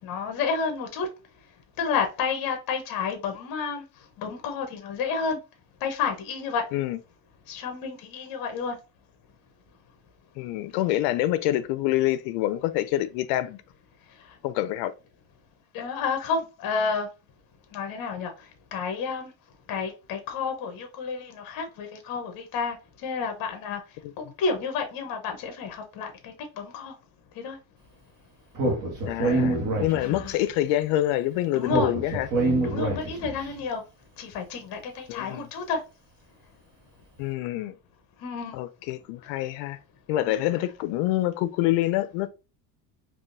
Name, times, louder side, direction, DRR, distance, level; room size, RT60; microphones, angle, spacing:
voice 1, 0.0-1.1 1.8-3.8 4.2-5.4 5.8-6.6 7.5-8.8 15.7-17.1 17.7-18.3 18.7-19.3 19.7-22.8 23.0-23.8 24.2-26.9 27.4-27.6 30.0-30.4 31.5-31.9 32.6-33.8 34.2-35.8 38.2-38.5 40.2-40.6, left 5 dB, 45° left, 0.9 m, -30 dB
voice 2, 10.4-13.6 14.4-14.9 29.1-32.3 35.1-35.5 37.2-37.7 38.5-39.8 40.1-42.3, left 14 dB, 65° left, 0.5 m, -26 dB
Speech, 28.5-30.4 31.7-33.4, right 2 dB, 40° right, 1.2 m, -26 dB
3.6 x 2.6 x 2.5 m
cardioid pair, 150°, 48 cm